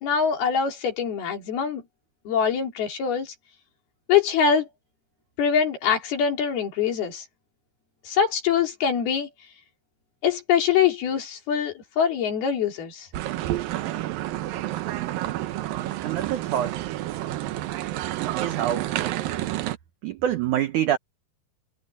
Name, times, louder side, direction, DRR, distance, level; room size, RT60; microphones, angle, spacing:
voice 1, 0.0-1.8 2.3-3.3 4.1-4.7 5.4-7.3 8.1-9.3 10.2-13.1, left 7 dB, 65° left, 5.0 m, -23 dB
sound 1, 13.1-19.8, right 15 dB, 70° right, 2.3 m, -29 dB
voice 2, 16.0-16.8 18.4-18.9 20.0-21.0, right 11 dB, 90° right, 1.7 m, -25 dB
omnidirectional pair, 5.0 m